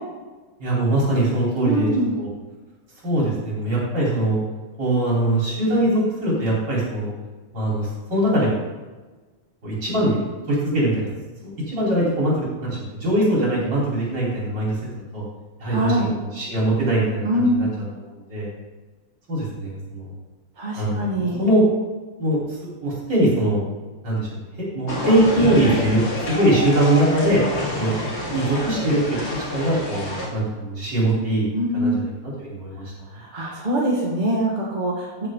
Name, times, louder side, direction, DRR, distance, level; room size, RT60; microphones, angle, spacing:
voice 1, 0.6-1.9 2.2-2.3 3.0-4.4 4.8-7.1 7.5-8.5 9.6-10.2 10.5-11.1 11.4-14.8 15.1-15.2 15.6-17.7 18.0-18.5 19.3-20.1 20.8-21.6 22.2-22.4 22.8-23.6 24.0-27.4 27.8-27.9 28.2-32.9, right 1 dB, 55° right, -6 dB, 4.8 m, -22 dB
voice 2, 1.6-2.2 15.7-16.1 17.2-17.7 20.6-21.4 31.5-32.0 33.2-35.3, right 1 dB, 25° right, -4 dB, 1.7 m, -23 dB
sound 1, 24.9-30.3, left 2 dB, 50° left, 2.9 m, -28 dB
14.5 x 6.8 x 3.9 m, 1.2 s
omnidirectional pair, 2.3 m